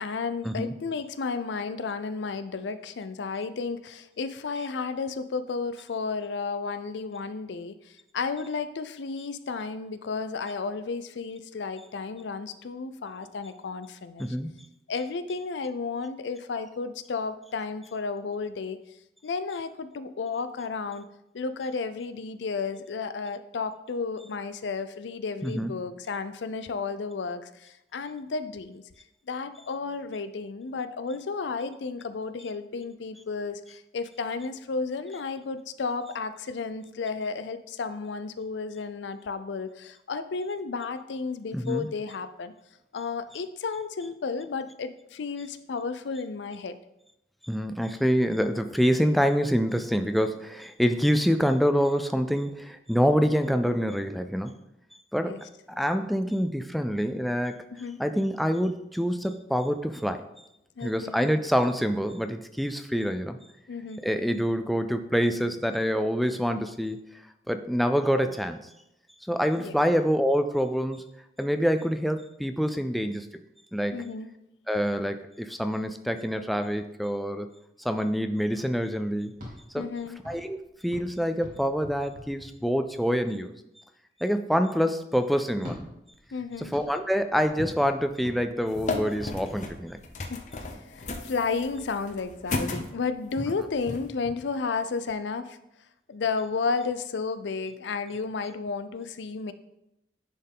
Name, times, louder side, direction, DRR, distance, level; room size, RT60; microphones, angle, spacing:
voice 1, 0.0-7.7 8.1-14.3 14.9-18.8 19.2-21.1 21.3-28.8 29.3-42.5 42.9-46.8 55.2-55.4 57.7-58.0 60.8-61.2 63.7-64.0 69.6-69.7 73.9-74.3 79.8-80.2 86.3-86.7 90.3-90.5 90.9-95.6 96.1-99.5, left 4 dB, 85° left, 12 dB, 0.5 m, -32 dB
voice 2, 14.2-14.5 25.4-25.7 41.5-41.9 47.4-54.6 55.1-57.7 58.0-60.2 60.8-63.4 64.0-67.0 67.5-68.6 69.3-71.0 71.4-73.3 73.7-74.0 74.7-77.5 77.8-79.4 79.7-79.9 80.2-83.5 84.2-85.8 86.6-90.0, equal, ahead, 7 dB, 0.3 m, -26 dB
sound 1, 79.3-83.1 85.5-90.4 92.7-95.1, left 1 dB, 50° right, 2.4 m, -44 dB
sound 2, 88.7-94.1, left 3 dB, 45° left, 0.7 m, -35 dB
10.0 x 4.4 x 3.6 m, 0.85 s
head